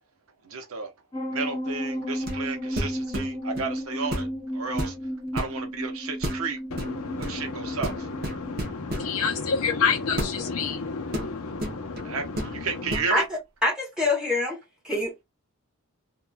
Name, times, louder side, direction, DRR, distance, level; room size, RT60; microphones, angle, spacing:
voice 1, 0.4-0.9 1.3-4.3 4.5-4.9 5.3-6.6 7.2-8.1 12.0-13.2, right 4 dB, 75° right, 0.8 m, -32 dB
sound 1, 1.1-8.6, equal, 15° left, 0.8 m, -33 dB
sound 2, 2.2-2.5 2.8-3.7 4.1-4.4 4.7-5.5 6.2-6.4 6.8-7.4 7.8-9.1 10.2-10.4 11.1-12.1 12.4-12.5 12.9-13.1, right 1 dB, 45° right, 0.7 m, -32 dB
voice 2, 6.7-7.8 8.3-12.6, left 5 dB, 75° left, 0.7 m, -29 dB
voice 3, 13.6-14.6 14.8-15.2, left 2 dB, 5° right, 1.1 m, -25 dB
2.8 x 2.4 x 2.3 m
head